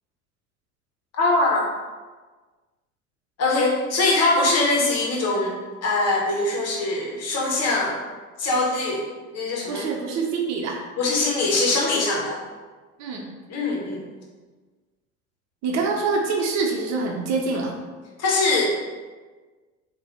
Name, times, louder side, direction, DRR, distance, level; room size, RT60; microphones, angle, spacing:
voice 1, 1.1-1.7 3.4-8.0 8.4-9.0 9.3-9.9 11.0-12.4 13.5-14.0 18.2-18.9, left 2 dB, 40° left, -2 dB, 1.8 m, -22 dB
voice 2, 9.7-10.8 13.0-13.2 15.6-17.7, right 4 dB, 45° right, 1 dB, 1.0 m, -25 dB
7.8 x 3.0 x 4.6 m, 1.3 s
figure-of-eight pair, 70°, 40 cm